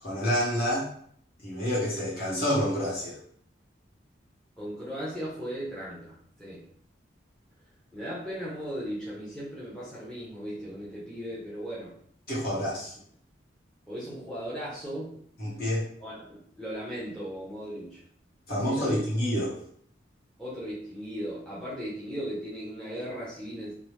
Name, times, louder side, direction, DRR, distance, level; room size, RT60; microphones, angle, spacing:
voice 1, 0.0-0.9 1.4-3.2 12.3-12.9 15.4-15.8 18.5-19.6, equal, 50° left, -6 dB, 1.1 m, -28 dB
voice 2, 4.6-6.6 7.9-11.9 13.9-15.2 16.0-18.0 18.5-19.0 20.4-23.7, equal, 5° left, -8 dB, 0.6 m, -37 dB
2.8 x 2.0 x 3.1 m, 0.62 s
head